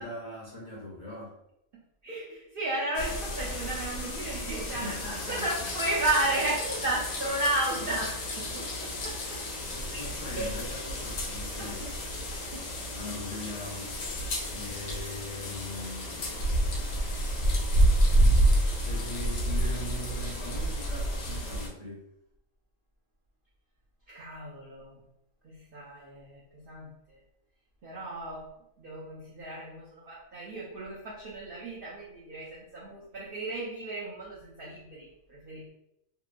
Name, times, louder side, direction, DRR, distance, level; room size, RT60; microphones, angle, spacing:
voice 1, 0.0-1.3 4.7-5.5 9.7-11.9 12.9-13.9 14.5-16.5 18.8-22.1, left 1 dB, 40° left, -7 dB, 0.6 m, -40 dB
voice 2, 1.7-5.0 5.3-10.0 10.3-10.6 11.6-11.9 12.3-12.7 24.1-25.0 25.4-27.2 27.8-28.5 28.8-35.7, right 2 dB, 65° right, -4 dB, 0.5 m, -34 dB
sound 1, 2.9-21.7, equal, 80° left, 1.1 m, -29 dB
2.8 x 2.2 x 2.4 m, 0.83 s
omnidirectional pair, 1.4 m